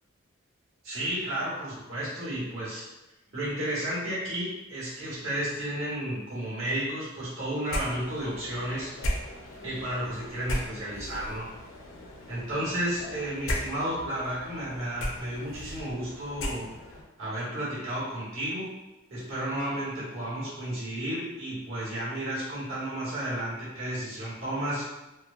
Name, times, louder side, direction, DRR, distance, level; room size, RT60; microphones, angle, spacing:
voice 1, 0.8-2.8 3.3-8.9 9.6-11.5 12.3-16.7 17.2-18.7 19.1-24.9, right 1 dB, 75° right, -8 dB, 1.2 m, -32 dB
sound 1, 7.7-17.0, left 1 dB, 70° left, 0.5 m, -37 dB
3.0 x 2.0 x 2.4 m, 0.99 s
head